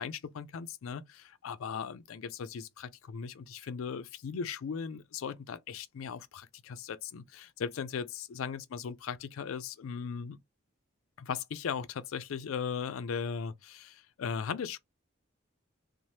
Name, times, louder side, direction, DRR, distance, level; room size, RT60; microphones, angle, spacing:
voice 1, 0.0-10.4 11.2-14.8, left 6 dB, 85° left, 0.4 m, -38 dB
2.7 x 2.0 x 3.1 m
head